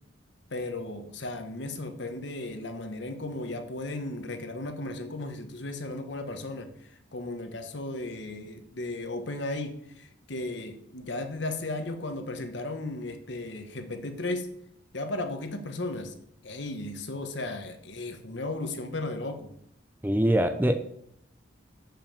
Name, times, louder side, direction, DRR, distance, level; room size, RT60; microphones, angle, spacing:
voice 1, 0.5-14.5 14.9-16.1 16.4-19.5, left 2 dB, 60° left, 7 dB, 1.1 m, -35 dB
voice 2, 20.0-20.8, equal, 10° right, 8 dB, 0.5 m, -23 dB
7.0 x 5.8 x 7.0 m, 0.71 s
head